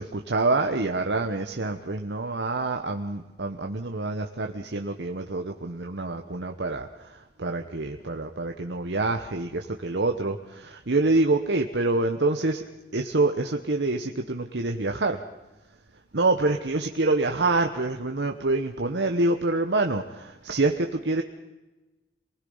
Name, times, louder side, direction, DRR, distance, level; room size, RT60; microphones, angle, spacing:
voice 1, 0.0-12.6 12.9-15.2 16.1-21.2, right 2 dB, 90° right, 4 dB, 1.1 m, -26 dB
27.5 x 20.0 x 5.6 m, 1.1 s
head